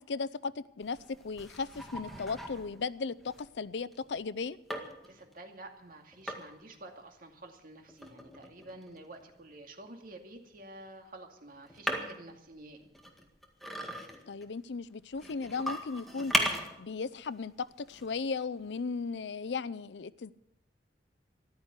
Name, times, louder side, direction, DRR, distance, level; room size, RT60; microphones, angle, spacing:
voice 1, 0.0-4.6 14.3-16.5 16.8-20.3, left 4 dB, 85° left, 0.5 m, -36 dB
sound 1, 0.8-4.2 4.7-5.3 6.1-6.7 7.8-9.5 11.6-12.4 12.8-14.5 15.1-16.8 17.2-17.3 17.9-18.1 18.6-18.7, equal, ahead, 1.9 m, -37 dB
voice 2, 5.1-12.9, right 2 dB, 55° right, 2.3 m, -49 dB
14.5 x 12.0 x 8.2 m
head